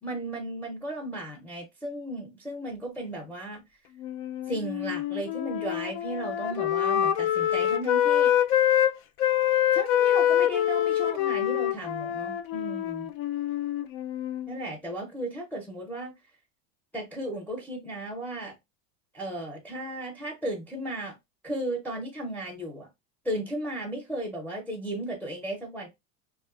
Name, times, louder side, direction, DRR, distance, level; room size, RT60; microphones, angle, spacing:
voice 1, 0.0-3.6 4.5-8.3 9.7-13.1 14.5-16.1 16.9-18.5 19.1-21.1 21.4-22.9 23.2-25.9, right 1 dB, 5° left, 0.5 m, -35 dB
Wind instrument woodwind instrument, 4.0-8.9 9.2-14.5, left 11 dB, 65° left, 0.5 m, -25 dB
2.4 x 2.3 x 2.3 m
hypercardioid pair, 105°, 45 cm